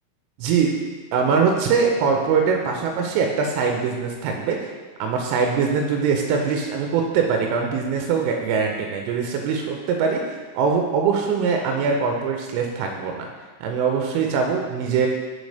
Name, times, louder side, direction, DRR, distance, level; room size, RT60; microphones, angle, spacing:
voice 1, 0.4-0.8 1.1-4.7 5.0-13.3 13.6-15.1, right 5 dB, 90° right, 2 dB, 3.1 m, -22 dB
6.3 x 5.2 x 3.2 m, 1.4 s
omnidirectional pair, 5.6 m